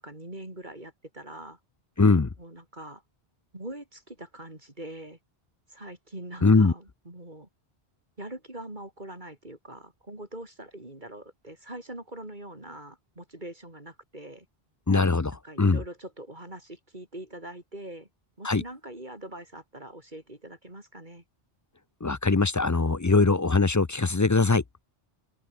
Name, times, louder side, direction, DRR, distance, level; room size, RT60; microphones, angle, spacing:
voice 1, 0.0-1.6 2.4-3.0 3.5-5.2 5.7-7.5 8.2-14.5 15.4-18.1 18.4-21.2, right 1 dB, 50° right, 5.2 m, -43 dB
voice 2, 2.0-2.3 6.4-6.7 14.9-15.8 18.4-18.6 22.0-24.6, left 3 dB, 25° left, 0.4 m, -21 dB
omnidirectional pair, 1.0 m